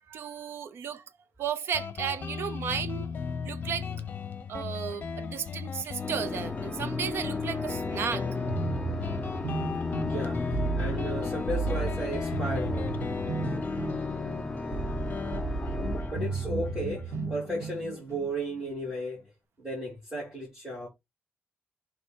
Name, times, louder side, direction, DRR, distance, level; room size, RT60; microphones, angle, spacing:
voice 1, 0.1-1.0 1.4-3.1 3.4-3.9 4.5-8.3, right 7 dB, 60° right, 0.6 m, -34 dB
Guitar, 1.7-18.9, left 6 dB, 40° left, 0.8 m, -36 dB
Organ, 6.0-16.9, left 2 dB, 10° left, 0.6 m, -36 dB
sound 1, 8.5-18.3, right 4 dB, 75° right, 1.8 m, -34 dB
voice 2, 10.0-13.0 16.1-19.2 19.6-20.9, right 1 dB, 10° right, 2.8 m, -34 dB
6.9 x 3.1 x 4.6 m
wide cardioid pair, 175°, 5 cm